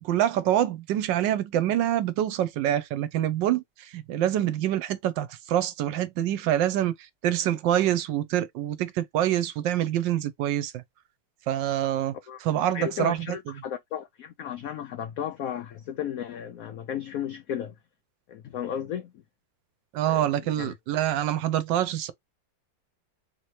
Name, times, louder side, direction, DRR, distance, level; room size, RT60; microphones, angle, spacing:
voice 1, 0.0-6.9 7.2-10.8 11.5-12.2 12.4-13.2 19.9-22.1, right 12 dB, 75° right, 1.3 m, -26 dB
voice 2, 12.7-17.7 18.3-19.2 20.0-20.7, left 9 dB, 85° left, 0.7 m, -34 dB
4.1 x 2.9 x 3.1 m
omnidirectional pair, 2.1 m